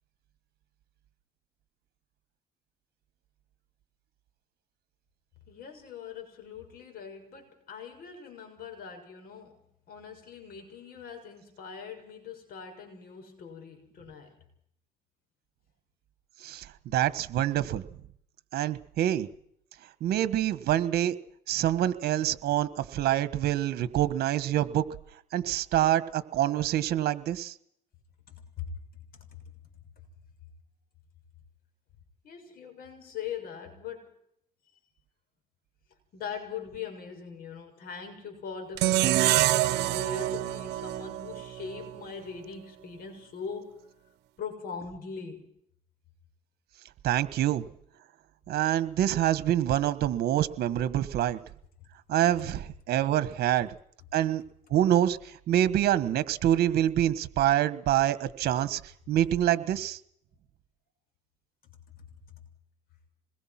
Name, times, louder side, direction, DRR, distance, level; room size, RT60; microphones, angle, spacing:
voice 1, 5.5-14.3 28.3-28.7 29.1-29.4 32.2-34.1 36.1-43.9 44.4-45.5 51.8-51.9 62.0-62.2, left 6 dB, 60° left, 6.7 m, -41 dB
voice 2, 16.4-17.8 18.5-19.3 20.0-21.1 21.5-24.8 25.3-27.5 47.0-47.6 48.5-51.4 52.1-53.7 54.1-54.4 54.7-58.8 59.1-60.0, right 12 dB, 70° right, 1.5 m, -26 dB
sound 1, 38.8-42.0, right 15 dB, 90° right, 0.9 m, -26 dB
26.0 x 21.5 x 6.0 m
cardioid pair, 110°, 17 cm